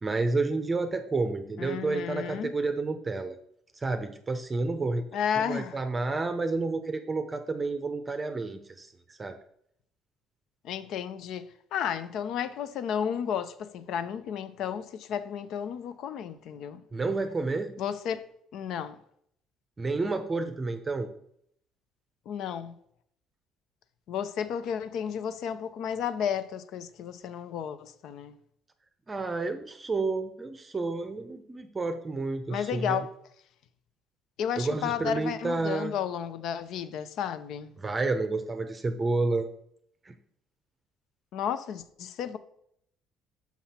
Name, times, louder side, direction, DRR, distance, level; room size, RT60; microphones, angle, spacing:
voice 1, 0.0-3.4 3.7-5.0 5.4-9.4 16.9-17.8 19.8-21.1 29.1-33.1 34.6-35.9 37.8-39.5 40.0-40.2, right 3 dB, 25° right, 0.6 m, -30 dB
voice 2, 1.6-2.5 5.1-5.8 10.6-11.5 11.7-16.8 17.8-18.2 18.5-19.0 22.3-22.7 24.1-28.4 32.5-33.1 34.4-37.7 41.3-42.4, left 8 dB, 70° left, 0.5 m, -32 dB
5.9 x 5.7 x 4.2 m
supercardioid pair, 90°, 0 cm